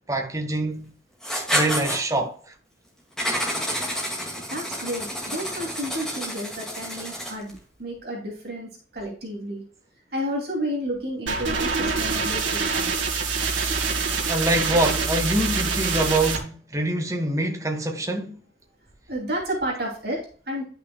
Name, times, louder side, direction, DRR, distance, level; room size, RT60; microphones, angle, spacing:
voice 1, 0.1-0.9 1.5-2.5 14.3-18.4, right 1 dB, 15° right, 1.1 m, -25 dB
Writing, 1.2-2.0 3.2-7.5, equal, 5° left, 1.9 m, -29 dB
voice 2, 4.2-9.6 10.1-13.0 19.1-20.7, equal, 55° right, 2.5 m, -31 dB
sound 1, 11.3-16.4, right 4 dB, 85° right, 2.0 m, -25 dB
10.5 x 5.7 x 2.2 m
head